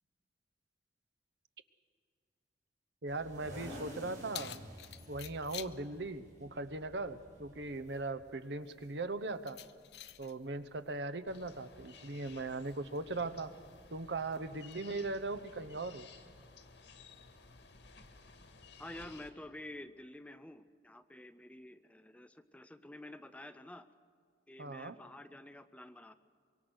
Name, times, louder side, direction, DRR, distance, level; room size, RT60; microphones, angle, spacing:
voice 1, 3.0-4.6 5.1-9.6 10.2-13.5 13.9-16.1 24.6-25.0, right 2 dB, 80° right, 11 dB, 1.0 m, -39 dB
sound 1, 3.1-8.1, equal, 45° right, 7.4 m, -50 dB
Keys jangling, 3.8-14.7, left 11 dB, 65° left, 0.7 m, -54 dB
sound 2, 11.3-19.3, left 4 dB, 85° left, 2.0 m, -56 dB
voice 2, 18.8-23.9 24.5-26.1, left 1 dB, 10° left, 11 dB, 0.5 m, -50 dB
24.5 x 23.0 x 6.4 m, 2.1 s
head